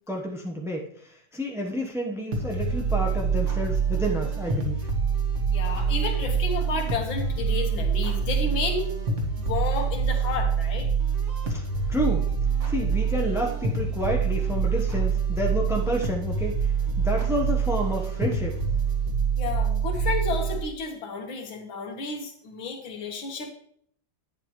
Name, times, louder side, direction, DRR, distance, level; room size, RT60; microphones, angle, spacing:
voice 1, 0.1-4.9 11.5-12.3 12.6-18.6, equal, 5° right, 0 dB, 0.4 m, -30 dB
sound 1, 2.3-20.6, right 6 dB, 40° right, 1.8 m, -26 dB
voice 2, 5.5-8.9 9.4-10.9 19.4-23.5, left 4 dB, 85° left, 2 dB, 2.2 m, -31 dB
10.5 x 9.6 x 3.1 m, 0.64 s
omnidirectional pair, 2.1 m